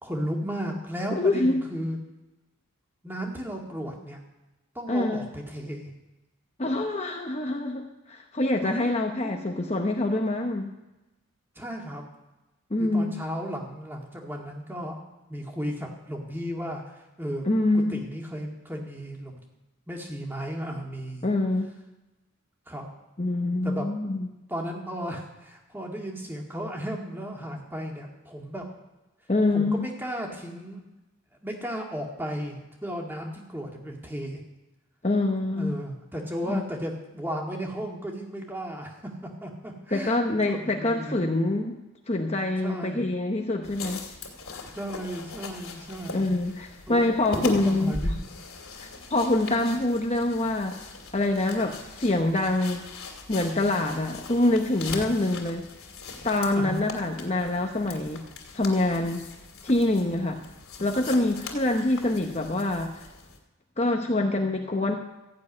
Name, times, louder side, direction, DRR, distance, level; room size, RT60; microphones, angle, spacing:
voice 1, 0.0-2.0 3.0-4.2 4.7-5.9 8.6-8.9 9.2-9.9 11.6-12.0 12.8-15.0 15.3-17.4 17.9-19.4 19.9-21.3 22.7-22.9 23.6-23.9 24.5-28.7 29.5-30.8 31.4-34.4 35.5-41.2 42.6-43.1 44.7-46.3 46.9-48.2 56.6-56.8, equal, 10° right, 0 dB, 2.0 m, -35 dB
voice 2, 1.1-1.6 4.9-5.3 6.6-10.8 12.7-13.1 17.4-18.0 21.2-21.7 23.2-24.3 29.3-29.8 35.0-35.7 36.5-36.6 39.9-41.8 42.1-44.0 46.1-48.0 48.8-50.8 51.1-52.8 53.3-55.6 56.2-58.2 58.5-59.2 59.6-60.4 60.8-63.0 63.8-65.0, left 2 dB, 30° left, 2 dB, 0.9 m, -25 dB
sound 1, 43.6-63.4, left 3 dB, 75° left, 2.6 m, -39 dB
14.5 x 7.2 x 9.6 m, 1.0 s
head